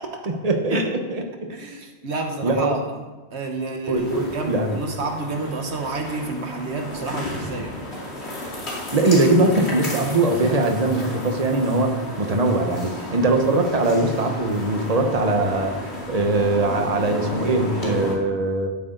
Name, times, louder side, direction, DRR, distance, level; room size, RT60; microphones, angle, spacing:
voice 1, 0.2-1.2 2.4-2.8 3.9-4.8 8.9-15.8 16.1-18.7, right 2 dB, 35° right, 4 dB, 1.2 m, -21 dB
voice 2, 1.5-3.0 3.3-7.7, right 3 dB, 85° right, 3 dB, 1.6 m, -29 dB
sound 1, 4.0-18.1, left 1 dB, 75° left, 2.7 m, -33 dB
12.5 x 8.4 x 4.0 m, 1.3 s
omnidirectional pair, 1.1 m